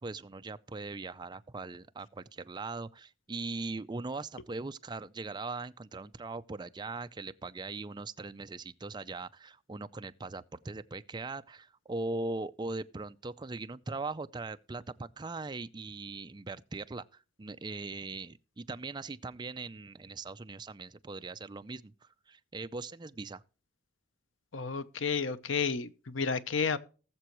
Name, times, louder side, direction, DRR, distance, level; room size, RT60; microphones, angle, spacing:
voice 1, 0.0-21.9 22.3-23.4, right 3 dB, 25° right, 0.5 m, -40 dB
voice 2, 24.5-26.8, left 5 dB, 85° left, 0.8 m, -31 dB
19.0 x 6.9 x 3.0 m
head